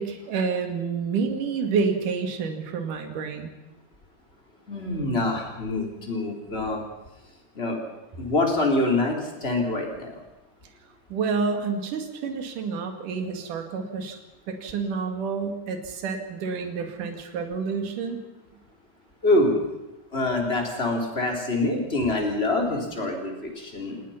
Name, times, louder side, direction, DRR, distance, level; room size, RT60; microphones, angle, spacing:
voice 1, 0.0-3.5 11.1-14.2 14.5-18.2, right 5 dB, 55° right, 5 dB, 3.5 m, -29 dB
voice 2, 4.7-6.8 7.5-7.8 8.2-10.2 19.2-19.6 20.1-24.0, left 2 dB, 15° left, 1 dB, 3.6 m, -25 dB
28.5 x 18.5 x 5.8 m, 0.99 s
omnidirectional pair, 4.7 m